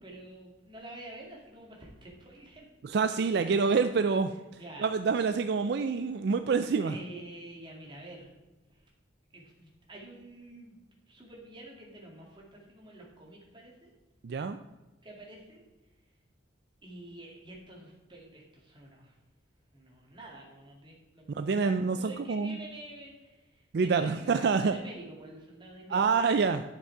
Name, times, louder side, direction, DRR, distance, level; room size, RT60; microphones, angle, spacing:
voice 1, 0.0-2.7 4.6-4.9 6.8-8.3 8.7-8.9 9.3-10.8 11.1-13.9 15.0-15.6 16.8-19.2 19.7-26.2, right 1 dB, 25° right, -2 dB, 2.2 m, -48 dB
voice 2, 2.8-4.3 4.8-6.9 14.2-14.6 21.3-22.6 23.7-24.7 25.9-26.6, right 5 dB, 60° right, 9 dB, 0.4 m, -27 dB
10.5 x 6.0 x 4.7 m, 1.1 s
head